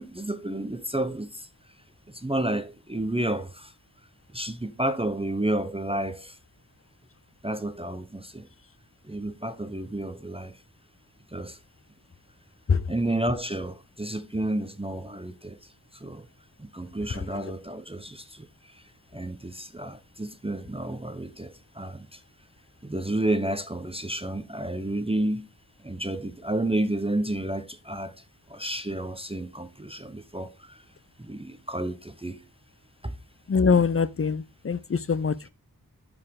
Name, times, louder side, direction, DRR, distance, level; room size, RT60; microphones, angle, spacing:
voice 1, 0.0-1.5 2.1-3.7 4.3-6.4 7.4-8.5 9.0-10.6 11.3-11.6 12.9-16.3 16.6-22.2 22.8-25.5 25.8-30.9 31.2-32.4 33.0-33.2, right 1 dB, 15° right, 0.8 m, -31 dB
voice 2, 33.5-35.5, left 5 dB, 35° left, 0.5 m, -24 dB
11.0 x 4.9 x 3.6 m
wide cardioid pair, 65°, 38 cm